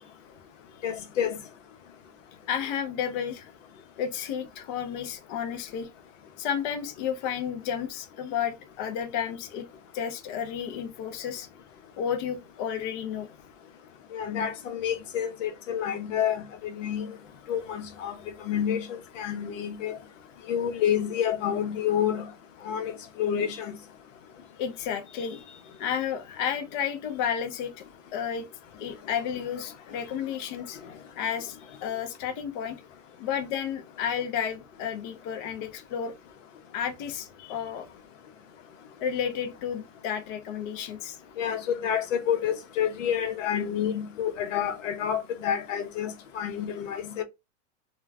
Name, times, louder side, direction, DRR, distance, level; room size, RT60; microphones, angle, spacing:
voice 1, 0.8-1.4 14.1-17.1 17.5-18.2 18.4-20.0 20.5-22.3 22.6-22.9 23.2-23.7 41.4-47.2, left 9 dB, 80° left, 0.8 m, -29 dB
voice 2, 2.5-3.5 4.0-5.9 6.4-9.7 9.9-11.5 12.0-13.3 24.6-27.7 28.1-28.5 28.8-30.8 31.2-32.8 33.2-36.1 36.7-37.9 39.0-41.2, left 8 dB, 40° left, 0.5 m, -32 dB
2.2 x 2.2 x 3.4 m
supercardioid pair, 135°, 38 cm